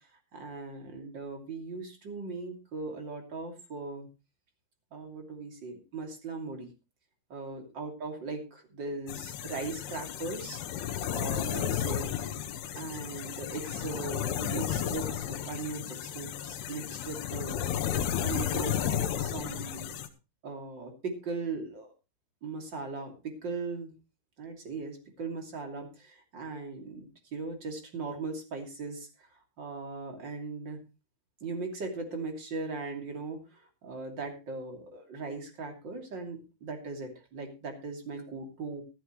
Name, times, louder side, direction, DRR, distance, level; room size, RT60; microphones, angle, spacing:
voice 1, 0.0-4.1 4.9-6.7 7.3-10.6 11.1-12.1 12.7-17.6 18.2-20.0 20.4-21.9 22.4-23.9 24.4-30.8 31.4-38.8, right 3 dB, 30° right, 3 dB, 3.0 m, -39 dB
sound 1, 9.1-20.1, left 9 dB, 90° left, 3.1 m, -33 dB
14.5 x 13.5 x 3.1 m, 0.29 s
omnidirectional pair, 4.5 m